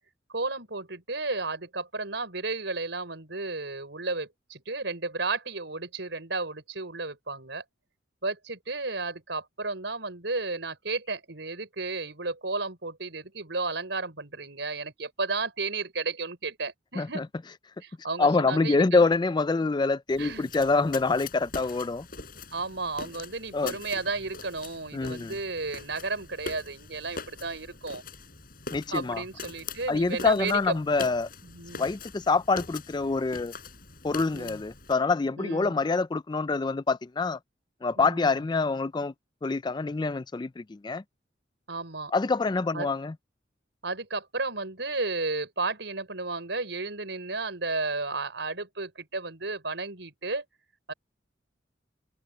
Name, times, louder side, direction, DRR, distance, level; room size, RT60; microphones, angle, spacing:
voice 1, 0.3-7.6 8.2-17.2 17.8-19.0 20.2-20.4 22.5-28.0 28.9-30.7 31.4-31.9 34.3-34.6 35.4-35.7 38.0-38.4 41.7-42.1 42.7-42.9 43.8-50.4 50.9-51.0, right 3 dB, 70° right, 6.1 m, -33 dB
voice 2, 18.2-22.1 23.5-23.7 24.9-25.3 28.7-29.2 29.9-31.3 31.8-33.5 34.0-37.4 37.8-39.1 39.4-41.0 42.1-43.1, left 3 dB, 25° left, 0.4 m, -26 dB
sound 1, 20.1-34.9, left 4 dB, 50° left, 5.3 m, -43 dB
open air
head